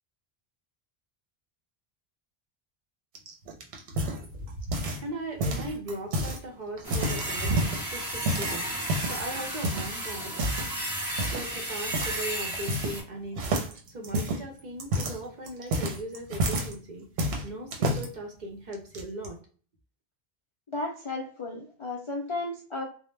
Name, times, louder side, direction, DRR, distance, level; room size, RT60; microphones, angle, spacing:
sound 1, 3.2-5.1 5.4-6.4 6.8-7.8 8.3-9.2 9.6-9.9 10.3-10.7 11.2-11.5 11.9-12.2 12.4-13.1 13.4-16.7 17.2-18.1 18.7-19.3, right 1 dB, 80° right, 0.8 m, -29 dB
voice 1, 5.0-8.7 9.0-10.3 11.3-13.6 13.9-17.1 17.4-19.4, right 1 dB, 50° right, 1 dB, 0.7 m, -38 dB
sound 2, 6.8-13.0, right 1 dB, 20° right, 1.0 m, -33 dB
voice 2, 20.7-22.8, left 2 dB, 50° left, -2 dB, 0.3 m, -34 dB
2.0 x 2.0 x 3.1 m, 0.41 s
omnidirectional pair, 1.0 m